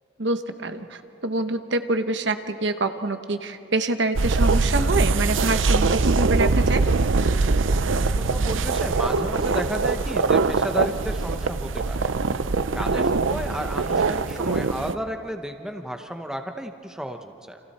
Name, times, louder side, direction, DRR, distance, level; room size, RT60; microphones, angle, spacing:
voice 1, 0.2-6.9 13.0-13.4, right 2 dB, 65° right, 8 dB, 1.1 m, -26 dB
sound 1, 4.1-14.9, right 3 dB, 85° right, 0.7 m, -22 dB
voice 2, 7.6-12.1 12.7-17.6, equal, 5° right, 5 dB, 1.0 m, -33 dB
29.5 x 27.0 x 4.3 m, 2.7 s
head